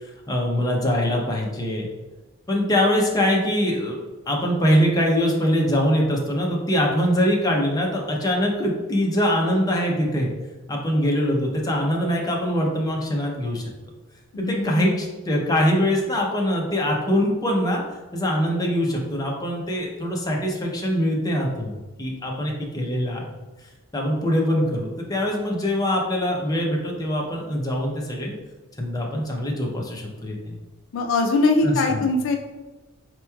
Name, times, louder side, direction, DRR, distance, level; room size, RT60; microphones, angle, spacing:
voice 1, 0.3-1.9 2.5-4.0 4.3-10.3 10.7-13.6 14.4-17.8 18.1-23.3 23.9-28.3 28.8-30.6 31.6-32.0, equal, 20° left, -1 dB, 0.6 m, -23 dB
voice 2, 14.3-15.0 30.9-32.4, left 3 dB, 65° left, 3 dB, 0.4 m, -22 dB
4.3 x 2.9 x 2.3 m, 1.2 s
head